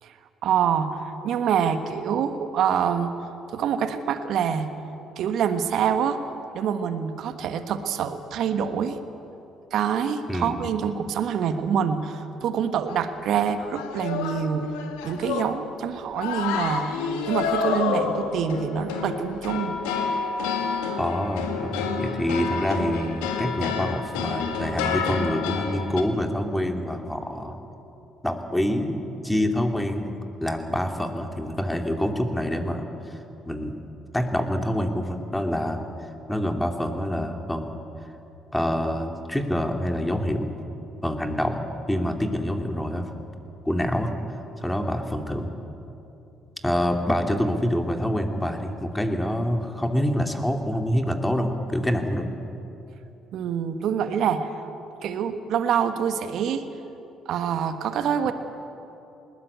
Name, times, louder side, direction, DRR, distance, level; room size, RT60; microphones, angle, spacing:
voice 1, 0.4-3.1 3.5-4.7 5.2-6.2 6.5-9.0 9.7-14.6 15.0-16.9 17.3-19.8 53.3-54.7 55.0-56.6 57.2-58.3, right 7 dB, 65° right, 9 dB, 1.3 m, -26 dB
voice 2, 10.3-10.6 21.0-27.7 28.2-33.2 33.4-33.8 34.1-35.8 36.3-37.7 38.5-40.5 41.0-43.1 43.6-45.5 46.6-52.3, equal, 10° left, 4 dB, 2.7 m, -26 dB
sound 1, 12.9-13.1 13.6-15.7 16.1-26.0, left 5 dB, 80° left, 1.7 m, -29 dB
20.5 x 19.5 x 8.4 m, 3.0 s
hypercardioid pair, 50°, 0 cm